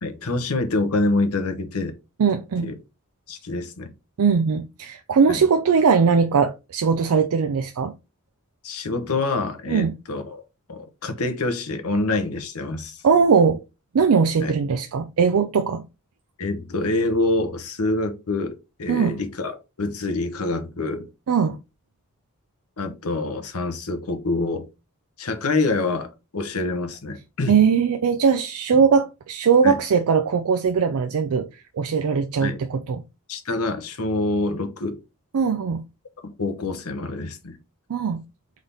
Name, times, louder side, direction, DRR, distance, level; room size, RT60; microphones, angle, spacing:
voice 1, 0.0-1.9 2.6-2.7 3.3-3.9 5.3-5.4 8.6-10.4 10.7-13.0 14.4-14.5 16.4-21.1 22.8-24.7 25.2-27.6 29.6-29.8 32.4-32.6 33.3-35.0 36.2-37.6, left 2 dB, 90° left, 1.0 m, -26 dB
voice 2, 2.2-2.7 4.2-7.9 9.7-9.9 13.0-13.6 13.9-15.9 18.9-19.2 21.3-21.6 27.5-33.0 35.3-35.8 37.9-38.2, right 6 dB, 75° right, 0.4 m, -20 dB
3.8 x 3.5 x 4.0 m
head